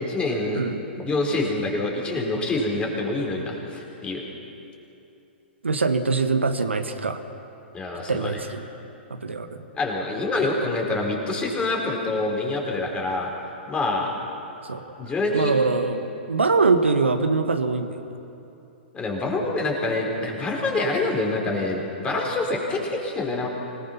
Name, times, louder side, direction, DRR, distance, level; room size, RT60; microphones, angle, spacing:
voice 1, 0.1-0.6 1.0-4.2 7.7-8.4 9.7-13.3 13.7-14.1 15.0-15.5 18.9-23.5, left 2 dB, 20° left, 0 dB, 4.4 m, -26 dB
voice 2, 5.6-7.2 8.1-8.6 9.1-9.6 14.7-14.8 15.3-18.2, right 4 dB, 90° right, 7 dB, 1.5 m, -23 dB
25.5 x 19.0 x 5.9 m, 2.8 s
hypercardioid pair, 115°, 6 cm